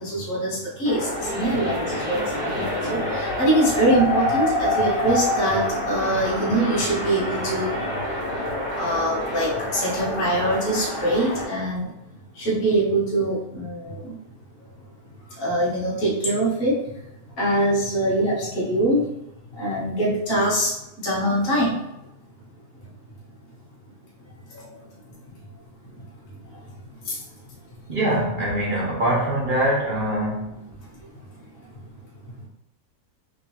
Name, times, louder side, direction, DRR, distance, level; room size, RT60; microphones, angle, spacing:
voice 1, 0.0-7.7 8.8-9.5 9.7-11.9 12.4-14.1 15.4-16.7 17.4-19.0 19.6-20.7 21.0-21.7, right 1 dB, 40° left, -8 dB, 1.2 m, -23 dB
sound 1, 0.8-11.4, left 1 dB, 65° left, 1.6 m, -27 dB
voice 2, 27.9-30.6, right 1 dB, 50° right, -5 dB, 0.6 m, -23 dB
3.8 x 2.9 x 2.8 m, 0.89 s
omnidirectional pair, 1.9 m